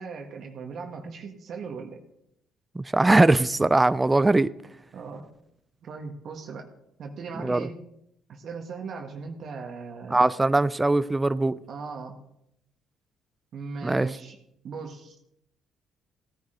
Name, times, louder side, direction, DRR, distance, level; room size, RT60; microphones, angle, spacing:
voice 1, 0.0-2.0 4.9-5.3 5.8-6.7 7.0-7.8 8.3-10.2 11.7-12.2 13.5-14.4 14.6-15.2, right 5 dB, 60° right, 1.6 m, -38 dB
voice 2, 2.8-4.5 7.4-7.7 10.1-11.5 13.8-14.1, right 2 dB, 15° right, 0.4 m, -21 dB
16.5 x 9.9 x 3.9 m
supercardioid pair, 70°, 0 cm